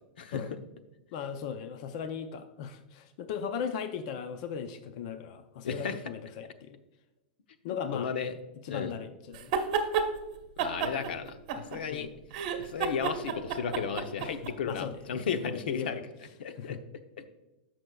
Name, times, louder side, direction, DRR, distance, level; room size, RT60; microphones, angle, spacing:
voice 1, 1.1-6.8 7.6-8.1 8.6-9.5 11.9-12.1 14.2-14.3 14.6-15.0 15.4-16.0 16.6-16.8, left 7 dB, 45° left, 8 dB, 0.5 m, -37 dB
voice 2, 7.7-8.3 8.7-8.9 10.6-11.4 11.7-12.1 12.6-16.0 16.4-16.8, left 6 dB, 80° left, 9 dB, 0.8 m, -34 dB
sound 1, 9.3-10.1 10.6-12.0 12.3-14.5, right 6 dB, 45° right, 1.0 m, -30 dB
14.0 x 6.1 x 2.3 m, 1.0 s
supercardioid pair, 165°, 5 cm